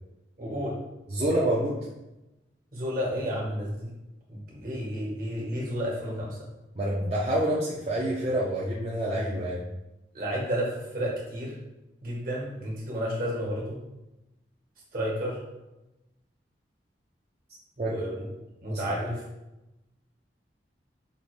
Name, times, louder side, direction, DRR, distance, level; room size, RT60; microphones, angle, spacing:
voice 1, 0.4-0.8 2.7-3.9 4.3-6.5 10.1-11.5 12.0-13.8 14.9-15.4 17.8-18.2 18.6-19.2, equal, 55° right, -3 dB, 1.4 m, -31 dB
voice 2, 1.1-1.9 6.8-9.7 17.8-18.0 18.7-18.8, right 1 dB, 35° right, -6 dB, 0.6 m, -27 dB
5.4 x 2.5 x 3.2 m, 0.97 s
head